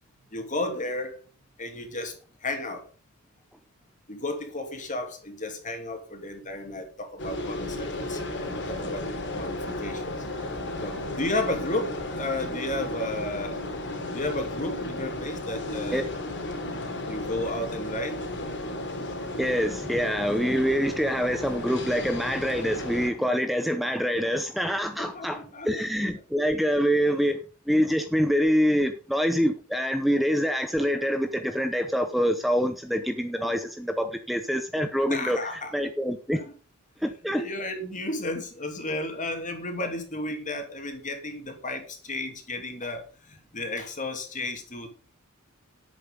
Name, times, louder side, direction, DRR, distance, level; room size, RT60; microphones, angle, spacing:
voice 1, 0.3-1.2 1.6-2.1 2.4-2.8 4.1-8.2 8.7-10.1 10.8-13.6 14.1-16.1 17.1-18.2 25.0-25.7 35.1-35.9 36.3-36.5 37.3-44.9, left 2 dB, 35° left, 3.0 m, -33 dB
sound 1, 7.2-23.1, left 2 dB, 55° left, 3.1 m, -34 dB
voice 2, 19.4-27.4 27.7-36.4 37.0-37.4, equal, ahead, 0.8 m, -25 dB
10.5 x 8.6 x 5.4 m
head